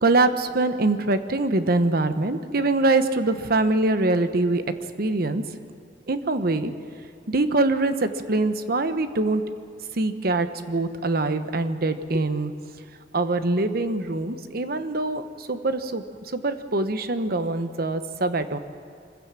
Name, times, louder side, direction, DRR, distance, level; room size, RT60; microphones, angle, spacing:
voice 1, 0.0-4.6 5.0-5.4 6.1-6.7 7.3-9.4 10.0-12.5 13.1-18.6, right 2 dB, 60° right, 10 dB, 1.0 m, -24 dB
25.0 x 15.5 x 7.5 m, 2.6 s
head